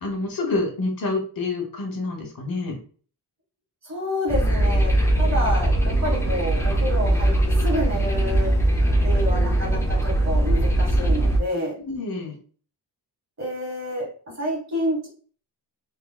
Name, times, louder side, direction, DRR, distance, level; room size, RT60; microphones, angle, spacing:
voice 1, 0.0-2.8 11.8-12.4, left 3 dB, 55° left, 1 dB, 1.1 m, -27 dB
voice 2, 3.8-4.9 5.2-7.3 7.6-8.5 9.0-11.7 13.4-15.1, equal, 40° right, -2 dB, 1.7 m, -28 dB
sound 1, 4.3-11.4, right 1 dB, 5° left, 0.5 m, -20 dB
3.8 x 2.8 x 2.3 m, 0.42 s
wide cardioid pair, 120°, 42 cm